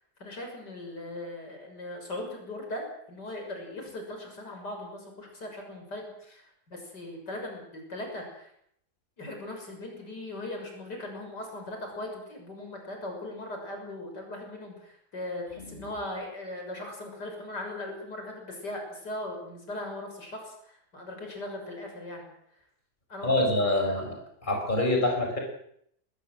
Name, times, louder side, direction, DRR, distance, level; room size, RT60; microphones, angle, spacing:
voice 1, 0.2-8.5 9.2-22.3 23.1-23.5 23.9-24.0, left 1 dB, 75° left, 3 dB, 6.9 m, -39 dB
voice 2, 15.6-15.9 23.2-24.2 24.4-25.4, left 1 dB, 25° left, 2 dB, 5.6 m, -26 dB
21.0 x 20.5 x 7.7 m, 0.70 s
omnidirectional pair, 1.8 m